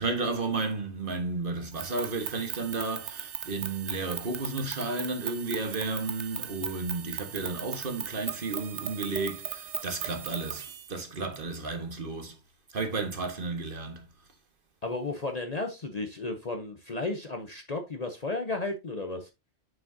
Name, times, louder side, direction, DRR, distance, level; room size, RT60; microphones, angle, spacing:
voice 1, 0.0-10.6 10.9-12.4 12.7-14.0, right 3 dB, 50° right, 1.5 m, -32 dB
sound 1, 1.7-10.9, right 9 dB, 75° right, 1.1 m, -38 dB
voice 2, 14.8-19.3, left 2 dB, 40° left, 0.8 m, -33 dB
7.2 x 6.5 x 2.7 m
omnidirectional pair, 1.2 m